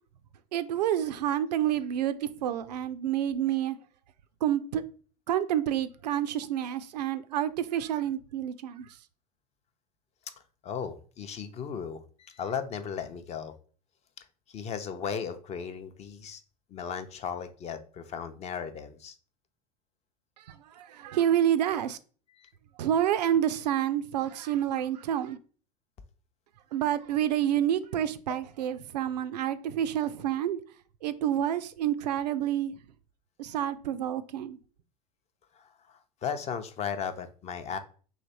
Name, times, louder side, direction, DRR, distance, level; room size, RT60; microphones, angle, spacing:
voice 1, 0.5-3.8 4.4-4.8 5.3-9.0 20.4-22.0 22.8-25.4 26.7-30.6 31.0-32.7 33.4-34.6, right 10 dB, 75° right, 0.4 m, -28 dB
voice 2, 10.6-13.5 14.5-16.4 16.7-19.2 22.4-22.5 35.5-37.8, left 7 dB, 30° left, 0.5 m, -36 dB
3.2 x 3.0 x 4.1 m
hypercardioid pair, 85°, 21 cm